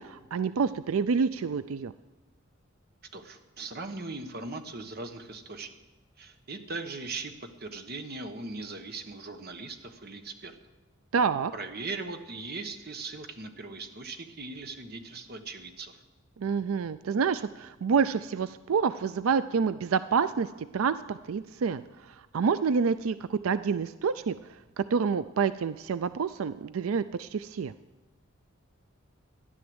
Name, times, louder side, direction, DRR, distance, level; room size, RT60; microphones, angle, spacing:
voice 1, 0.0-1.9 11.1-11.5 16.4-24.4 24.8-27.7, right 6 dB, 90° right, 13 dB, 0.4 m, -28 dB
voice 2, 3.1-5.7 6.2-10.6 11.5-16.0, right 3 dB, 50° right, 6 dB, 1.3 m, -39 dB
13.5 x 11.0 x 7.9 m, 1.1 s
head